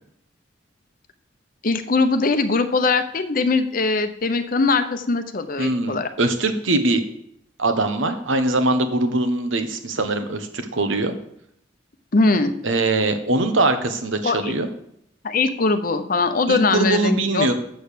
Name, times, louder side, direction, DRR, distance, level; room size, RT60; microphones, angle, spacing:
voice 1, 1.6-6.1 12.1-12.5 14.2-14.5 15.2-17.5, left 3 dB, 45° left, 9 dB, 0.7 m, -21 dB
voice 2, 5.6-7.0 7.6-11.1 12.6-14.7 16.5-17.5, right 2 dB, 80° right, 7 dB, 1.1 m, -22 dB
7.9 x 6.6 x 6.7 m, 0.73 s
head